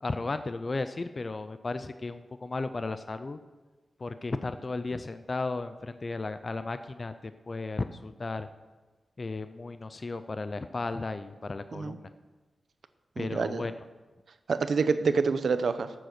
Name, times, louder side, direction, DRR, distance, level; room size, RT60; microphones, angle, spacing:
voice 1, 0.0-3.4 4.0-8.5 9.2-12.1 13.2-13.7, left 3 dB, 30° left, 11 dB, 0.4 m, -34 dB
voice 2, 13.2-13.7 14.5-15.9, right 5 dB, 65° right, 11 dB, 0.7 m, -27 dB
10.5 x 7.6 x 6.6 m, 1.2 s
wide cardioid pair, 155°, 0 cm